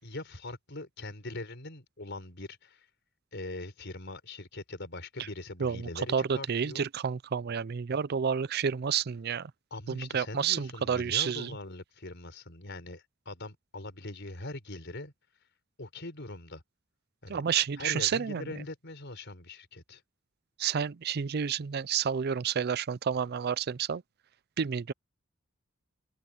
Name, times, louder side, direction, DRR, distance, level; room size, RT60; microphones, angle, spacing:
voice 1, 0.0-2.9 3.3-6.9 9.7-15.1 15.8-16.6 17.2-17.4 17.8-20.0, left 2 dB, 60° left, 4.9 m, -42 dB
voice 2, 5.6-9.5 9.9-11.6 17.3-18.6 20.6-24.0 24.6-24.9, right 7 dB, 50° right, 0.4 m, -30 dB
open air
head